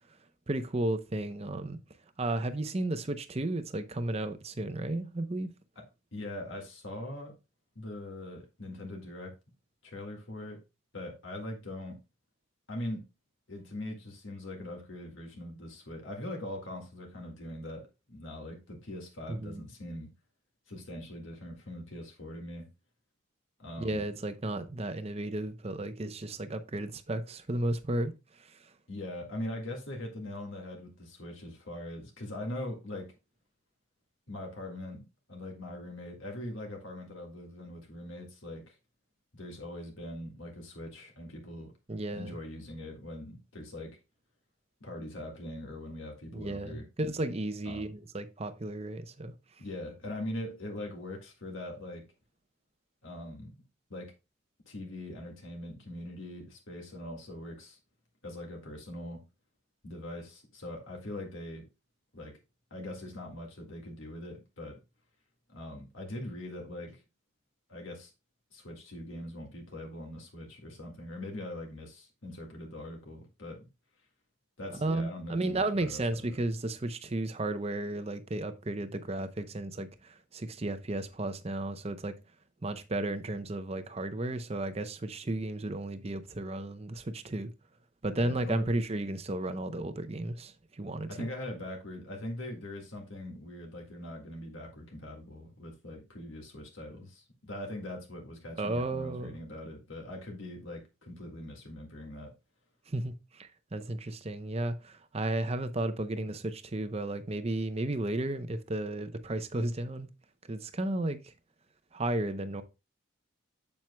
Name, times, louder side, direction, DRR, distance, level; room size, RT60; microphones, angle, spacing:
voice 1, 0.5-1.8 2.2-5.5 19.3-19.6 23.8-28.7 41.9-42.4 46.3-49.3 74.8-82.1 82.6-87.5 88.0-91.3 98.6-99.4 102.9-110.1 110.4-111.3 111.9-112.6, right 2 dB, 30° right, 0.6 m, -34 dB
voice 2, 6.1-7.4 7.8-9.3 9.8-10.6 10.9-12.0 12.7-13.1 13.5-20.1 20.7-22.7 23.6-24.1 28.9-33.1 34.3-35.0 35.3-38.8 39.3-41.7 42.1-44.0 44.8-46.8 47.7-47.9 49.6-52.0 53.0-53.6 53.9-54.1 54.7-57.8 58.2-59.2 59.8-61.6 62.1-62.4 62.7-64.8 65.5-67.0 67.7-68.1 68.5-73.7 74.6-76.0 76.3-76.4 88.2-88.7 91.1-102.3, left 1 dB, 65° left, 1.8 m, -42 dB
7.5 x 7.4 x 2.2 m
head